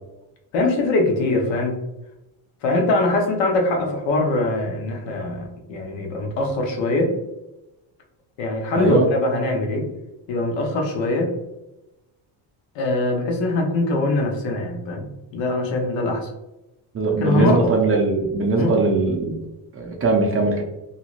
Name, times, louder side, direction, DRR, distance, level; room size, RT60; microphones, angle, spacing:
voice 1, 0.5-1.8 2.6-7.2 8.4-9.9 10.3-11.4 12.7-15.1 15.3-16.3 17.1-17.7 18.6-18.8, left 2 dB, 70° left, 2 dB, 0.9 m, -22 dB
voice 2, 16.9-19.3 19.7-20.6, right 3 dB, 30° right, 1 dB, 0.6 m, -20 dB
2.9 x 2.7 x 2.4 m, 0.94 s
cardioid pair, 115°, 46 cm